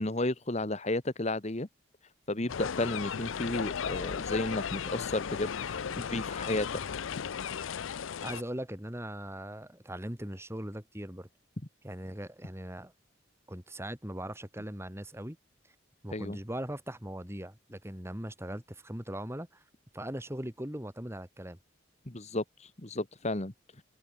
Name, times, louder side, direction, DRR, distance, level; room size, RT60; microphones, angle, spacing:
voice 1, 0.0-1.7 2.3-6.7 16.1-16.4 22.1-23.5, left 2 dB, 35° left, 1.5 m, -33 dB
sound 1, 2.5-8.4, left 7 dB, 80° left, 0.5 m, -35 dB
voice 2, 8.2-11.3 11.8-12.9 13.5-15.4 16.0-19.6 19.9-21.6, right 1 dB, 15° right, 2.3 m, -40 dB
head